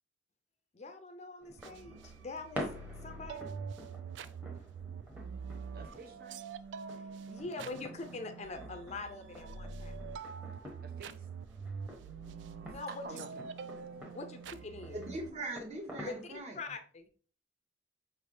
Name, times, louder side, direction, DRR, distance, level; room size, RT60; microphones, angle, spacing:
voice 1, 0.7-2.7 3.0-3.5 5.7-5.8 6.9-10.0 12.6-13.1 14.1-15.0 16.0-16.2 16.5-17.1, left 3 dB, 40° left, 0.5 m, -44 dB
sound 1, 1.4-16.4, equal, 10° right, 0.9 m, -49 dB
sound 2, 1.6-15.3, right 5 dB, 80° right, 0.3 m, -45 dB
voice 2, 5.7-6.4 10.8-11.3 12.9-13.4, right 3 dB, 55° right, 0.7 m, -48 dB
voice 3, 14.9-16.6, right 2 dB, 35° right, 1.0 m, -40 dB
5.4 x 3.3 x 2.6 m
head